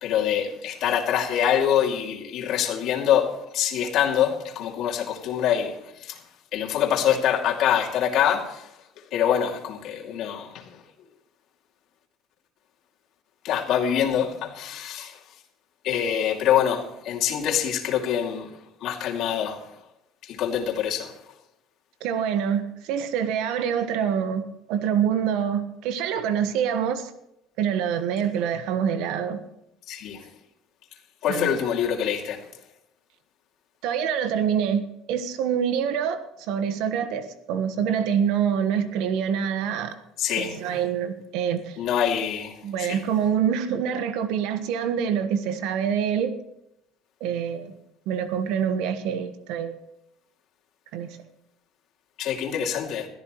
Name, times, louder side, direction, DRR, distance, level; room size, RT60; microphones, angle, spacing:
voice 1, 0.0-5.7 6.0-6.2 6.5-8.7 9.1-10.6 13.4-15.2 15.8-18.5 18.8-19.6 20.2-21.1 29.9-30.2 31.2-32.4 40.2-40.6 41.8-43.0 52.2-53.1, left 9 dB, 60° left, 1 dB, 2.6 m, -25 dB
voice 2, 22.0-27.1 27.6-29.4 31.3-31.5 33.8-36.2 36.5-39.9 40.4-41.8 42.6-46.3 47.2-47.7 48.1-49.8 50.9-51.2, right 8 dB, 75° right, 10 dB, 1.3 m, -26 dB
21.0 x 13.5 x 3.1 m, 0.84 s
supercardioid pair, 95°, 0 cm